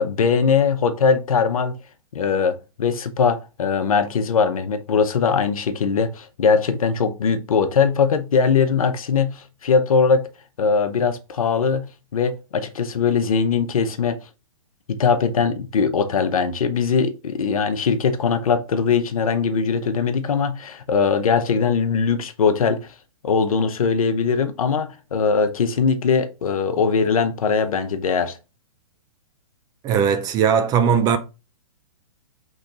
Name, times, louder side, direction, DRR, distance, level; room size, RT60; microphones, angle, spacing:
voice 1, 0.0-1.8 2.1-10.3 10.6-14.2 14.9-22.8 23.2-28.4, left 5 dB, 75° left, 0.8 m, -21 dB
voice 2, 29.8-31.2, right 7 dB, 20° right, 0.5 m, -18 dB
4.2 x 3.1 x 3.8 m
hypercardioid pair, 130°, 18 cm